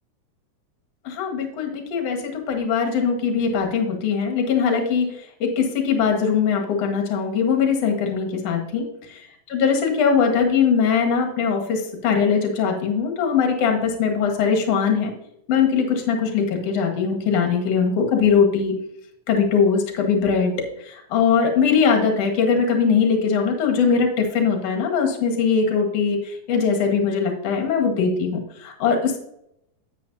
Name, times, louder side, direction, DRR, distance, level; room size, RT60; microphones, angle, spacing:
voice 1, 1.0-5.1 5.4-8.8 9.1-9.2 9.5-15.1 15.5-18.7 19.3-20.5 20.9-29.2, left 6 dB, 50° left, 2 dB, 2.4 m, -21 dB
10.5 x 8.0 x 2.8 m, 0.74 s
omnidirectional pair, 4.3 m